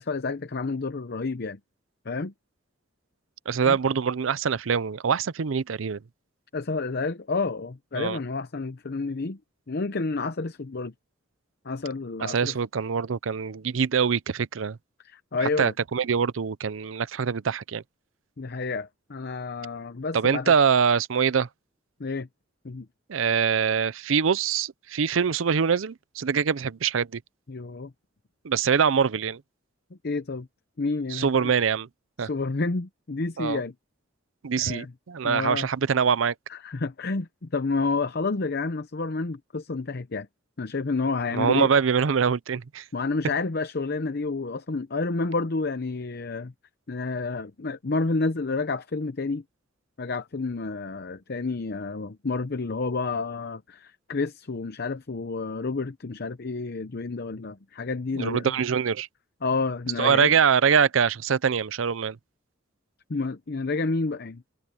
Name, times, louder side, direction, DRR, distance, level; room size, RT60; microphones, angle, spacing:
voice 1, 0.0-1.6 2.1-2.3 3.7-3.8 6.5-9.4 9.7-10.9 11.6-12.6 15.0-15.7 18.4-20.5 22.0-22.3 22.6-22.9 27.5-27.9 30.0-30.5 30.8-31.5 32.2-33.7 34.6-34.9 35.2-35.7 36.5-40.3 40.6-41.7 42.9-46.5 46.9-49.4 50.0-58.6 59.4-60.3 63.1-64.4, left 3 dB, 55° left, 0.7 m, -30 dB
voice 2, 3.5-6.0 7.9-8.2 12.2-14.8 15.4-17.8 20.1-21.5 23.1-27.2 28.4-29.4 31.1-31.9 32.2-32.3 33.4-33.6 34.4-36.3 41.3-42.8 58.2-59.1 60.0-62.2, right 6 dB, 80° right, 0.6 m, -24 dB
head